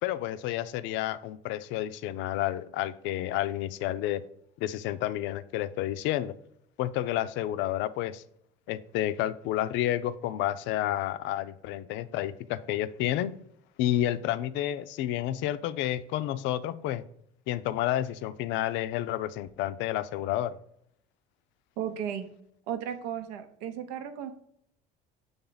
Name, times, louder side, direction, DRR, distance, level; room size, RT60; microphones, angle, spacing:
voice 1, 0.0-4.2 4.6-6.3 6.8-8.2 8.7-13.3 13.8-17.0 17.5-20.6, left 13 dB, 65° left, 14 dB, 0.5 m, -30 dB
voice 2, 21.8-22.3 22.7-24.3, right 9 dB, 85° right, 8 dB, 0.7 m, -35 dB
7.1 x 3.5 x 3.9 m, 0.70 s
supercardioid pair, 90°, 21 cm